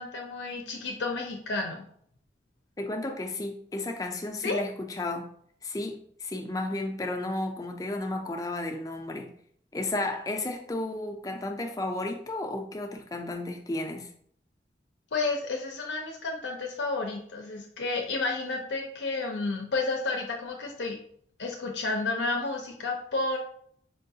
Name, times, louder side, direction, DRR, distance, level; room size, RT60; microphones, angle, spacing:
voice 1, 0.0-1.8 4.4-4.6 15.1-21.0 21.4-23.4, left 3 dB, 85° left, 1 dB, 0.5 m, -31 dB
voice 2, 2.8-5.3 5.6-9.3 9.7-14.1, left 2 dB, 20° left, 3 dB, 0.4 m, -33 dB
4.4 x 2.3 x 2.7 m, 0.63 s
head